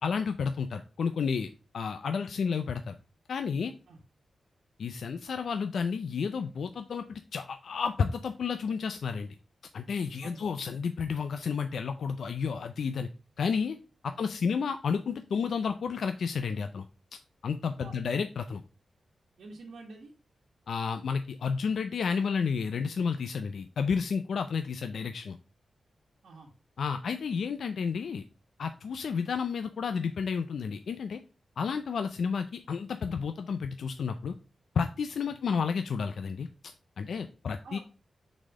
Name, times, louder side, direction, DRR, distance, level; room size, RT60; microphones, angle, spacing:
voice 1, 0.0-1.5 1.7-2.9 3.3-3.7 4.8-9.3 9.7-13.1 13.4-13.8 14.0-16.9 17.4-18.6 20.7-25.4 26.8-28.2 28.6-31.2 31.6-34.3 34.7-36.5 37.0-37.8, left 6 dB, 75° left, 8 dB, 0.4 m, -31 dB
voice 2, 19.4-20.1 26.2-26.5 37.6-37.8, right 3 dB, 75° right, -2 dB, 1.3 m, -47 dB
6.3 x 4.1 x 3.6 m, 0.34 s
wide cardioid pair, 135°, 0 cm